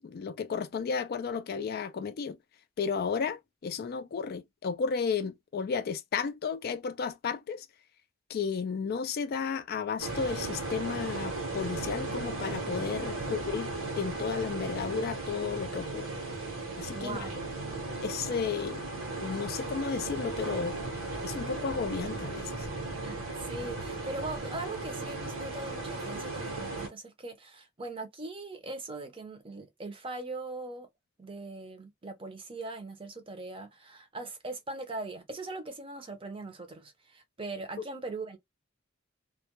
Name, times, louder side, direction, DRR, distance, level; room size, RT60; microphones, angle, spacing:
voice 1, 0.0-2.4 2.8-7.7 8.3-16.1 16.8-17.2 18.0-18.8 19.2-20.7 21.2-22.7, left 5 dB, 50° left, 0.3 m, -33 dB
sound 1, 10.0-26.9, right 2 dB, 75° right, 1.0 m, -36 dB
voice 2, 16.9-17.5 23.0-30.9 31.2-38.4, right 2 dB, 25° right, 0.6 m, -40 dB
2.2 x 2.1 x 2.8 m
head